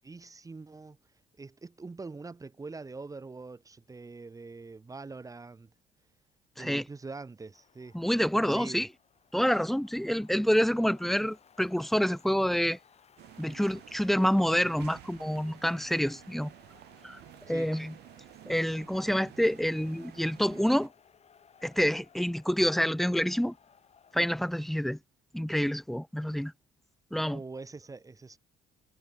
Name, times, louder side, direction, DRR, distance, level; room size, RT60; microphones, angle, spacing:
voice 1, 0.0-1.0 1.4-5.7 6.6-8.0 8.3-8.9 17.5-17.7 27.3-28.4, right 3 dB, 20° right, 2.0 m, -44 dB
sound 1, 7.5-24.3, left 7 dB, 40° left, 3.3 m, -61 dB
voice 2, 7.9-8.9 9.3-12.8 13.4-16.5 17.0-17.2 17.5-17.9 18.5-20.9 21.6-23.5 24.1-25.0 25.3-26.5 27.1-27.4, equal, ahead, 0.3 m, -27 dB
sound 2, 13.2-20.9, right 16 dB, 75° right, 2.6 m, -52 dB
cardioid pair, 110°, 17 cm